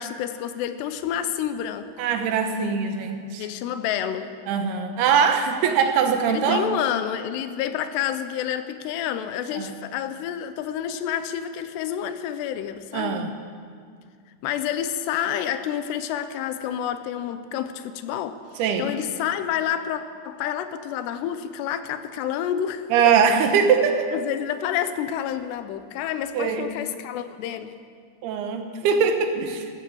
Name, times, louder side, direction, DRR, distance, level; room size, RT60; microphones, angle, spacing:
voice 1, 0.0-1.9 3.4-4.4 6.3-13.2 14.4-18.4 18.8-22.8 24.1-27.8, left 10 dB, 80° left, 11 dB, 2.7 m, -29 dB
voice 2, 2.0-3.5 4.5-6.7 9.6-9.7 12.9-13.3 18.6-18.9 22.9-24.1 26.3-26.7 28.2-29.7, right 6 dB, 70° right, 5 dB, 2.8 m, -22 dB
14.5 x 14.0 x 7.0 m, 2.1 s
omnidirectional pair, 5.2 m